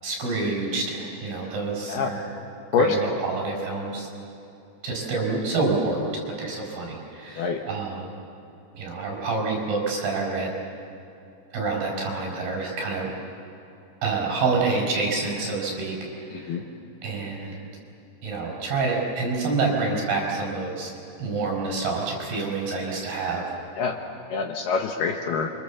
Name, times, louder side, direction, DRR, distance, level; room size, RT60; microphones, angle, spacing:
voice 1, 0.0-2.2 2.7-4.1 4.8-8.1 8.7-10.5 11.5-13.1 14.0-16.6 17.0-17.7 18.2-20.9 21.2-23.6, right 3 dB, 55° right, -1 dB, 6.9 m, -27 dB
voice 2, 16.3-16.6 23.8-24.0 24.3-25.5, left 5 dB, 70° left, 3 dB, 2.9 m, -25 dB
28.5 x 24.5 x 7.3 m, 2.7 s
omnidirectional pair, 5.4 m